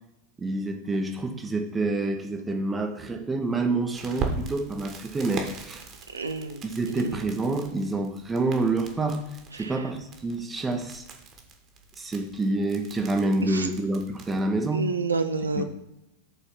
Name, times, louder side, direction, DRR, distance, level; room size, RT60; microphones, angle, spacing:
voice 1, 0.4-5.8 6.6-9.2 9.5-11.1 12.0-14.9 15.6-15.7, right 2 dB, 15° right, 4 dB, 0.8 m, -27 dB
Crackle, 3.9-14.4, right 4 dB, 30° right, 1.3 m, -40 dB
voice 2, 6.1-6.6 7.0-7.2 9.6-9.7 13.5-13.7 14.7-15.6, right 3 dB, 75° right, 7 dB, 0.5 m, -29 dB
7.0 x 4.1 x 5.7 m, 0.88 s
figure-of-eight pair, 90°, 0 cm